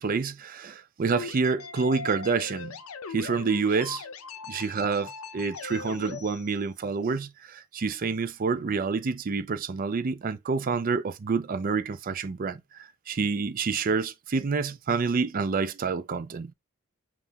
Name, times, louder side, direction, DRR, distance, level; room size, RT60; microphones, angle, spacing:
voice 1, 0.0-2.8 3.1-4.0 4.5-16.5, right 4 dB, 40° right, 0.4 m, -28 dB
sound 1, 1.1-6.2, left 5 dB, 75° left, 0.6 m, -39 dB
sound 2, 5.5-7.1, left 7 dB, 30° left, 1.6 m, -53 dB
5.4 x 2.4 x 2.8 m
head